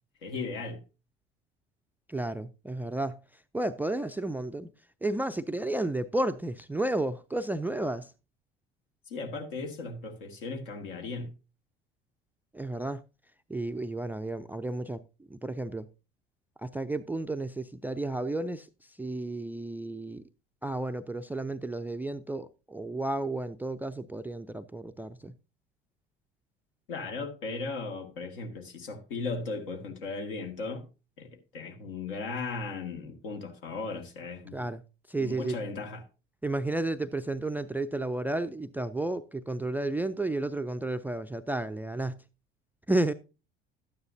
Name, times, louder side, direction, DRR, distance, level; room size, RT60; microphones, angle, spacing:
voice 1, 0.2-0.8 9.1-11.3 26.9-30.9 31.2-34.7 35.2-36.1, left 3 dB, 70° left, 2.0 m, -37 dB
voice 2, 2.1-3.2 3.5-4.7 5.0-8.1 12.5-13.0 13.5-15.0 15.3-15.9 16.6-18.7 19.0-20.2 20.6-25.3 34.5-34.8 35.1-35.6 36.4-42.2 42.9-43.1, right 2 dB, 5° right, 0.4 m, -32 dB
12.5 x 9.4 x 2.7 m
figure-of-eight pair, 65°, 29 cm